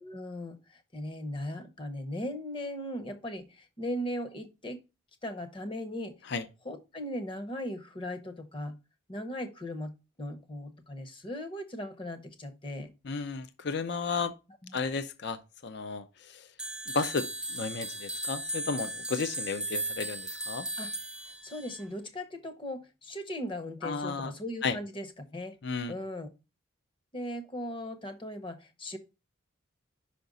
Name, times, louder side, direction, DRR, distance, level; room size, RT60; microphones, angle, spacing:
voice 1, 0.0-4.8 5.2-6.3 6.6-8.8 9.1-12.9 14.6-14.8 20.8-20.9 21.4-25.1 25.3-25.6 25.9-26.3 27.1-29.0, left 1 dB, 25° left, 0.8 m, -38 dB
voice 2, 13.0-14.3 14.7-16.5 16.9-20.7 23.8-24.3 24.6-24.8 25.6-25.9, left 4 dB, 55° left, 0.5 m, -33 dB
sound 1, 16.6-21.8, right 2 dB, 5° right, 0.3 m, -37 dB
5.6 x 5.1 x 3.9 m
head